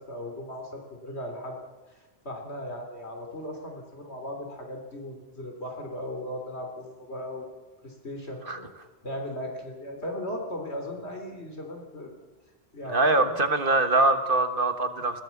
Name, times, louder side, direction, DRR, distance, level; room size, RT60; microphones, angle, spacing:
voice 1, 0.0-1.6 1.9-7.6 7.8-8.7 9.0-12.1 12.7-13.6, left 1 dB, 85° left, 3 dB, 3.9 m, -37 dB
voice 2, 12.9-15.2, right 2 dB, 55° right, 9 dB, 1.7 m, -23 dB
20.5 x 17.5 x 7.3 m, 1.2 s
omnidirectional pair, 1.1 m